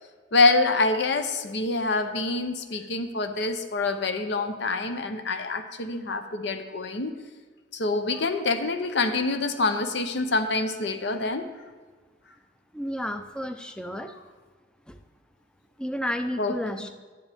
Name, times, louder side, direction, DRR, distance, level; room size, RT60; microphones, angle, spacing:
voice 1, 0.3-7.1 7.7-11.5 16.4-16.5, left 3 dB, 60° left, 8 dB, 0.7 m, -26 dB
voice 2, 12.7-14.1 14.9-15.0 15.8-16.9, equal, 5° left, 8 dB, 0.5 m, -32 dB
11.0 x 10.0 x 3.5 m, 1.4 s
head